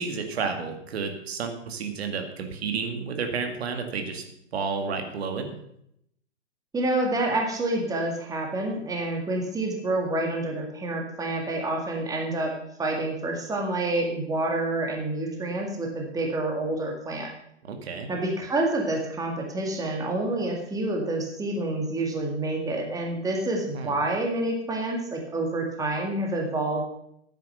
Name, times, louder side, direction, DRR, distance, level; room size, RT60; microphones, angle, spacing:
voice 1, 0.0-4.2 4.5-5.5 17.6-18.1 23.7-23.9, right 5 dB, 60° right, 5 dB, 2.2 m, -31 dB
voice 2, 6.7-12.5 12.8-17.3 18.1-26.8, right 2 dB, 10° right, 1 dB, 2.0 m, -28 dB
10.0 x 9.1 x 6.6 m, 0.74 s
hypercardioid pair, 125°, 35 cm